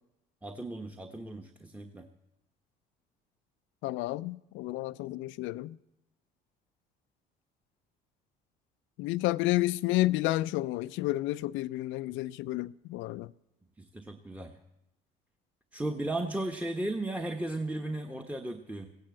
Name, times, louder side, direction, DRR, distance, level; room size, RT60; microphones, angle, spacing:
voice 1, 0.4-2.1 13.8-14.6 15.7-18.9, right 2 dB, 5° right, 1.2 m, -35 dB
voice 2, 3.8-5.8 9.0-13.3, left 17 dB, 70° left, 0.5 m, -31 dB
15.5 x 10.5 x 7.7 m
hypercardioid pair, 70°, 21 cm